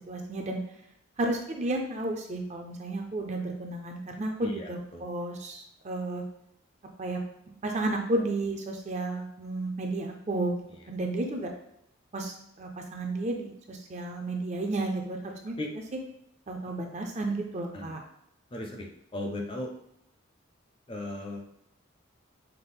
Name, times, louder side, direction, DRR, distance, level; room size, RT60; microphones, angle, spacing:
voice 1, 0.1-0.6 1.2-6.2 7.0-7.2 7.6-10.6 10.9-11.5 12.1-15.5 16.5-18.0, right 2 dB, 35° right, 2 dB, 0.5 m, -32 dB
voice 2, 4.4-5.0 15.6-15.7 17.7-18.0 18.5-19.7 20.9-21.4, left 1 dB, 25° left, 2 dB, 0.5 m, -37 dB
5.7 x 2.1 x 3.5 m, 0.74 s
head